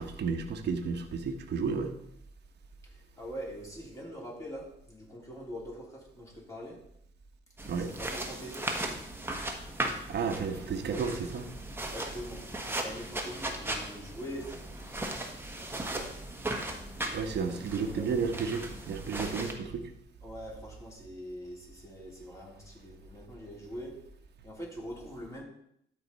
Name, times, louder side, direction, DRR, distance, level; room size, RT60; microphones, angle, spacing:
voice 1, 0.0-1.9 7.7-7.9 10.1-11.5 17.1-19.9, right 5 dB, 55° right, 5 dB, 1.1 m, -32 dB
voice 2, 2.8-6.8 7.8-8.6 11.7-15.2 15.6-16.2 17.4-17.6 17.9-18.0 20.2-23.9 24.4-25.4, equal, 15° left, -4 dB, 3.3 m, -43 dB
sound 1, 7.6-19.5, right 1 dB, 10° right, 1.3 m, -37 dB
12.5 x 4.4 x 4.1 m, 0.73 s
cardioid pair, 90°, 20 cm